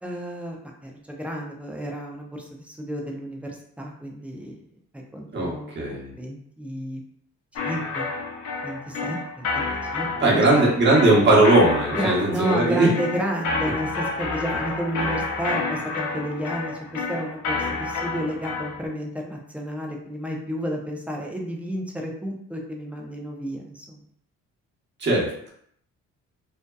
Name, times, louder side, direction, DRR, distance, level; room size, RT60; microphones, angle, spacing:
voice 1, 0.0-4.6 4.9-7.0 7.6-8.1 8.6-10.7 11.9-24.0, equal, 5° right, 0 dB, 0.5 m, -31 dB
voice 2, 5.8-6.1 10.2-12.9 25.0-25.5, right 2 dB, 35° right, -4 dB, 1.0 m, -18 dB
sound 1, 7.6-18.9, left 4 dB, 70° left, 0.6 m, -30 dB
2.6 x 2.2 x 2.2 m, 0.67 s
cardioid pair, 90°, 30 cm